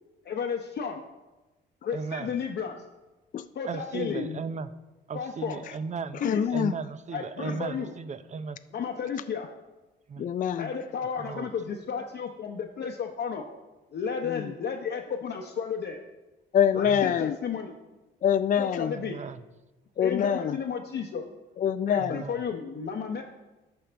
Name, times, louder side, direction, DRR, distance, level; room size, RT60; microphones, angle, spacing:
voice 1, 0.3-1.0 1.8-2.8 3.5-4.3 5.1-5.6 6.2-6.4 7.1-7.9 8.7-9.5 10.6-13.5 13.9-16.0 16.8-17.7 18.6-19.2 20.0-21.2 21.9-23.2, left 6 dB, 60° left, 1 dB, 0.8 m, -33 dB
voice 2, 1.9-2.4 3.7-4.7 5.1-6.2 6.5-8.6 10.1-10.3 11.0-11.5 16.8-17.1 18.9-19.5 22.0-22.4, right 5 dB, 35° right, 13 dB, 0.6 m, -36 dB
voice 3, 6.2-6.7 10.2-10.7 14.2-14.5 16.5-17.4 18.2-18.9 20.0-20.6 21.6-22.2, left 8 dB, 40° left, 11 dB, 0.4 m, -25 dB
14.0 x 5.5 x 3.4 m, 1.1 s
cardioid pair, 90°, 20 cm